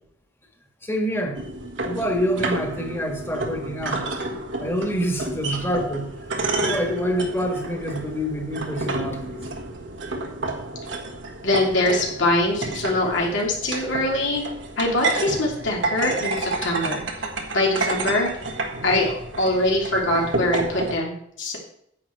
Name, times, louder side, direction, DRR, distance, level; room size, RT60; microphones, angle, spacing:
voice 1, 0.8-1.4 1.8-4.1 4.6-6.1 6.6-9.4, equal, 15° left, 4 dB, 1.5 m, -26 dB
sound 1, 1.3-20.9, right 2 dB, 80° right, 1.5 m, -30 dB
voice 2, 11.4-14.4 14.8-17.0 17.5-18.3 18.8-21.6, left 1 dB, 85° left, -2 dB, 3.1 m, -23 dB
9.8 x 8.5 x 4.6 m, 0.70 s
head